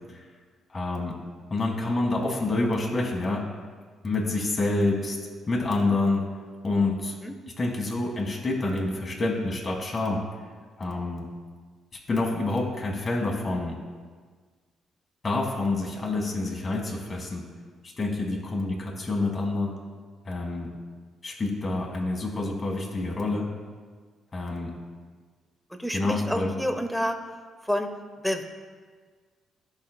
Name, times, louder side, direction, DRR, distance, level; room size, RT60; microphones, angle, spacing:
voice 1, 0.7-1.2 1.5-3.5 4.0-5.2 5.5-6.2 6.6-7.1 7.6-10.2 10.8-11.3 12.1-13.8 15.2-17.4 17.8-19.7 20.2-20.7 21.2-23.5 24.3-24.7 25.9-26.5, left 2 dB, 35° left, -2 dB, 1.6 m, -27 dB
voice 2, 25.7-27.2 27.6-27.9 28.2-28.4, equal, ahead, 6 dB, 0.7 m, -28 dB
14.5 x 5.2 x 2.2 m, 1.5 s
cardioid pair, 90°, 0 cm